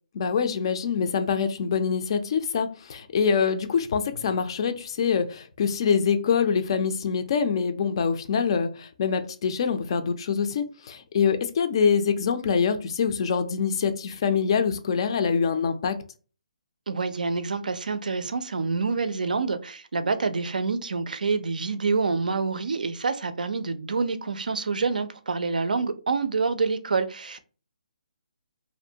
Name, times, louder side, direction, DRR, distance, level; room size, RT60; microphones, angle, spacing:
voice 1, 0.2-16.0, left 6 dB, 35° left, 0.4 m, -25 dB
voice 2, 16.9-27.4, right 4 dB, 85° right, 0.4 m, -27 dB
2.5 x 2.1 x 2.7 m
hypercardioid pair, 160°, 4 cm